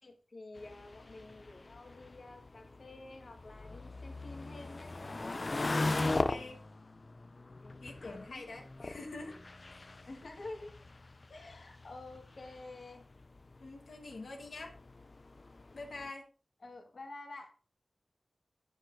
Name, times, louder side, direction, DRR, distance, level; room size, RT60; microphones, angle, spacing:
voice 1, 0.0-4.9 7.6-7.7 8.0-8.5 8.8-8.9 9.2-9.3 10.0-10.7 11.3-13.1 16.6-17.5, left 2 dB, 70° left, 3 dB, 1.5 m, -49 dB
sound 1, 0.6-16.1, left 2 dB, 45° left, 0.4 m, -40 dB
voice 2, 5.6-6.6 7.8-9.4 9.7-9.9 13.6-14.8 15.7-16.2, left 3 dB, 85° left, 1 dB, 1.3 m, -46 dB
9.9 x 6.5 x 2.6 m, 0.36 s
wide cardioid pair, 95°, 0 cm